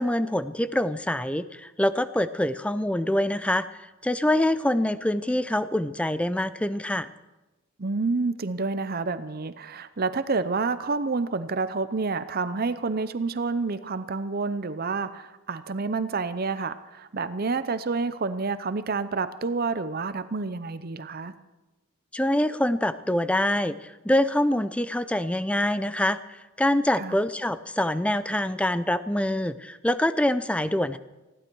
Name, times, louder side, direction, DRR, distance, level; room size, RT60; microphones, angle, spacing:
voice 1, 0.0-3.7 4.0-7.1 22.1-23.7 24.0-31.0, left 1 dB, 5° left, 13 dB, 0.5 m, -25 dB
voice 2, 7.8-21.3 27.0-27.2, right 4 dB, 45° right, 12 dB, 0.7 m, -29 dB
20.0 x 15.5 x 4.6 m, 1.1 s
head